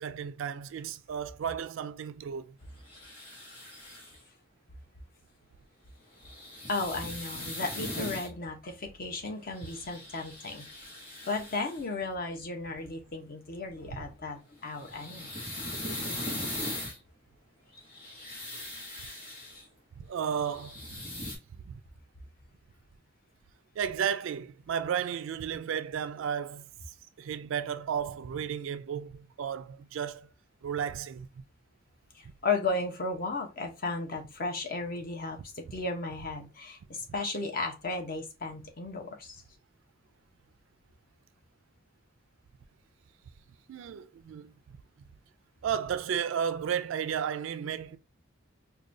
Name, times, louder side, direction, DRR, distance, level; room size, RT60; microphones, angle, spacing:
voice 1, 0.0-2.6 20.0-20.8 21.5-21.8 23.8-26.7 27.2-30.3 30.6-31.3 43.7-44.5 45.6-48.0, right 8 dB, 70° right, 0.3 m, -33 dB
sound 1, 2.8-4.2 6.2-8.3 9.5-11.8 14.6-17.0 17.7-19.6 20.3-21.4, left 1 dB, 25° left, 1.7 m, -40 dB
voice 2, 6.7-10.6 11.3-15.3 32.1-39.4, left 3 dB, 45° left, 0.7 m, -35 dB
4.7 x 2.2 x 2.5 m
head